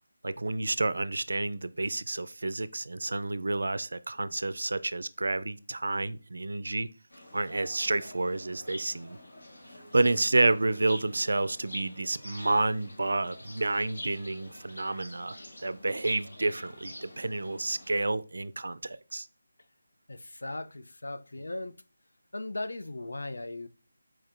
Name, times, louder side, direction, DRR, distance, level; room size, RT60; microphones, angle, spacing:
voice 1, 0.2-6.9 7.3-9.2 9.9-15.4 15.6-19.3, right 2 dB, 65° right, 0.4 m, -29 dB
sound 1, 7.1-18.0, left 1 dB, 60° left, 1.5 m, -46 dB
voice 2, 20.1-21.8 22.3-23.7, left 2 dB, 85° left, 0.5 m, -38 dB
4.5 x 4.4 x 2.5 m
figure-of-eight pair, 180°, 0 cm